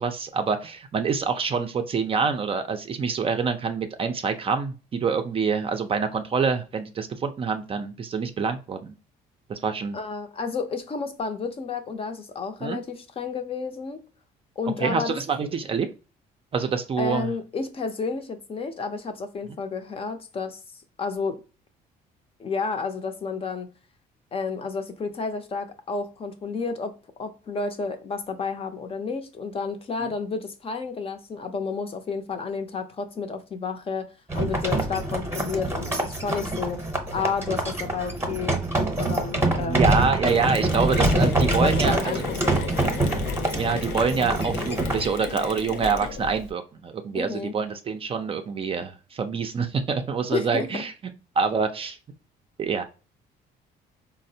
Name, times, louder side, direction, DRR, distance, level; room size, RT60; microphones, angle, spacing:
voice 1, 0.0-4.7 5.0-8.9 9.5-10.0 12.6-12.8 14.8-15.9 16.5-17.3 30.0-30.1 39.6-42.2 43.0-43.2 43.5-50.9 51.4-52.0 52.6-52.8, right 5 dB, 35° right, 0.4 m, -26 dB
voice 2, 9.9-14.0 14.6-15.2 17.0-20.6 21.0-21.4 22.4-23.7 24.3-26.9 27.2-34.1 34.3-36.8 37.1-38.6 39.0-39.9 41.4-42.7 47.1-47.5 50.3-50.8, left 5 dB, 35° left, 0.6 m, -31 dB
sound 1, 34.3-45.0, right 2 dB, 15° right, 0.8 m, -25 dB
Mechanisms, 40.3-46.5, left 6 dB, 75° left, 0.5 m, -34 dB
4.1 x 2.0 x 2.6 m
cardioid pair, 110°, 17 cm